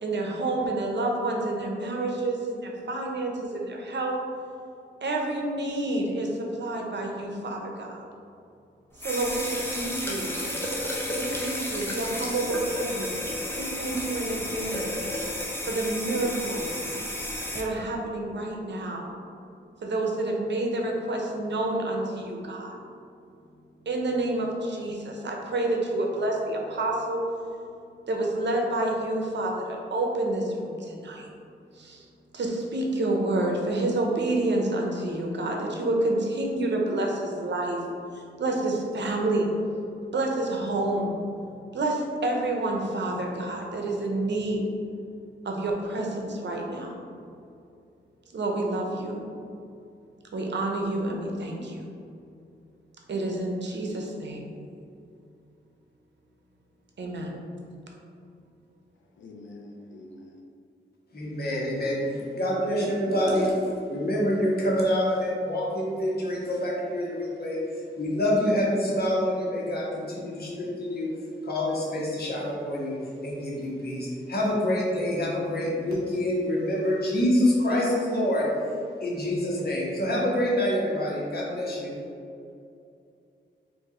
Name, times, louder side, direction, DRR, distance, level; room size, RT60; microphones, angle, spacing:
voice 1, 0.0-4.2 5.0-8.0 9.0-10.3 11.1-13.1 13.6-15.0 15.6-16.8 17.5-19.1 19.8-22.8 23.9-27.2 28.1-31.3 31.7-32.1 32.3-37.8 38.1-39.5 40.1-41.2 41.7-44.6 45.4-47.0 48.3-49.3 50.3-51.8 53.1-54.5 57.0-57.4, right 2 dB, 65° right, 1 dB, 0.7 m, -29 dB
sound 1, 9.0-17.6, left 1 dB, 10° left, 0.7 m, -32 dB
voice 2, 59.1-60.4, left 2 dB, 75° left, 0 dB, 0.6 m, -45 dB
voice 3, 61.1-63.6 63.9-67.6 68.0-71.1 71.4-78.5 79.0-81.9, left 1 dB, 55° left, -4 dB, 1.2 m, -26 dB
4.6 x 2.7 x 3.7 m, 2.5 s
cardioid pair, 65°, 20 cm